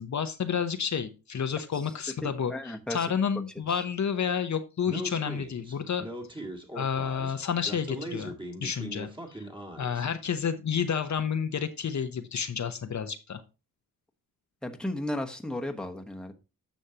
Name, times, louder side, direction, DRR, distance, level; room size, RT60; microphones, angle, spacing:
voice 1, 0.0-6.1 6.3-6.4 6.7-8.3 8.6-9.5 9.8-13.4, left 7 dB, 50° left, 8 dB, 0.8 m, -30 dB
voice 2, 2.5-3.1 14.6-16.3, left 1 dB, ahead, 4 dB, 1.1 m, -34 dB
Speech, 4.9-10.1, right 1 dB, 15° right, 1.8 m, -40 dB
10.0 x 6.4 x 2.8 m, 0.29 s
cardioid pair, 75°, 36 cm